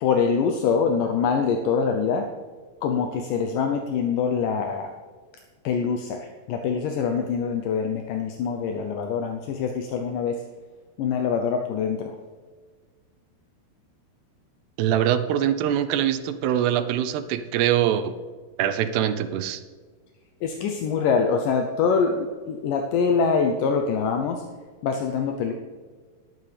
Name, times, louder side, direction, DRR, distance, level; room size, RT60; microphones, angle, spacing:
voice 1, 0.0-2.2 2.8-4.9 5.6-10.4 11.0-12.2 20.4-24.4 24.8-25.5, left 6 dB, 75° left, 4 dB, 2.0 m, -24 dB
voice 2, 14.8-18.1 18.6-19.6, right 10 dB, 90° right, 10 dB, 2.8 m, -23 dB
19.5 x 8.6 x 3.4 m, 1.5 s
omnidirectional pair, 4.6 m